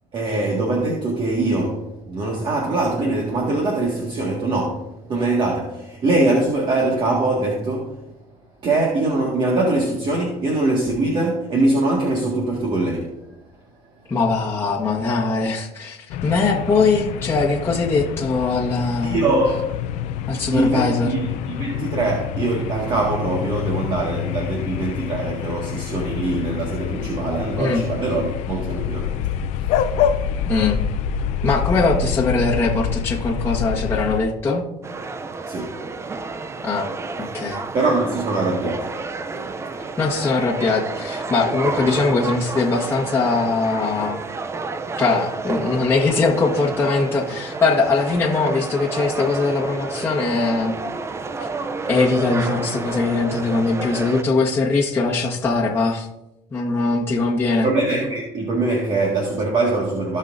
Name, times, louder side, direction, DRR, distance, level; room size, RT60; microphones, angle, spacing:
voice 1, 0.1-8.0 8.6-13.2 19.0-19.6 20.5-29.3 29.6-29.8 35.5-35.8 37.7-38.9 57.6-60.2, right 2 dB, 40° right, -1 dB, 1.9 m, -22 dB
voice 2, 14.1-19.2 20.3-21.2 27.6-27.8 30.5-30.8 31.4-34.6 36.6-36.9 37.2-37.6 40.0-44.3 45.0-50.7 51.9-56.1 56.5-57.7, left 3 dB, 20° left, -4 dB, 1.4 m, -21 dB
sound 1, 16.1-34.2, left 8 dB, 70° left, 0.6 m, -27 dB
sound 2, 34.8-54.2, right 3 dB, 20° right, 0.6 m, -30 dB
17.0 x 5.6 x 2.7 m, 0.90 s
cardioid pair, 115°, 12 cm